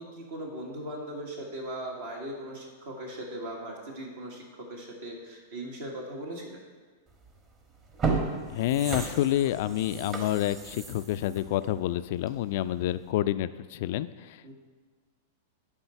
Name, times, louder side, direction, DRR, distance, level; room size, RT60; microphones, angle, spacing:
voice 1, 0.0-6.6 14.4-14.5, right 1 dB, 65° right, -1 dB, 1.5 m, -39 dB
sound 1, 7.2-7.4 7.8-12.5 12.9-13.0, right 4 dB, 30° right, 1.3 m, -34 dB
voice 2, 8.5-14.4, left 13 dB, 55° left, 14 dB, 0.3 m, -28 dB
11.0 x 3.8 x 5.7 m, 1.5 s
figure-of-eight pair, 95°, 0 cm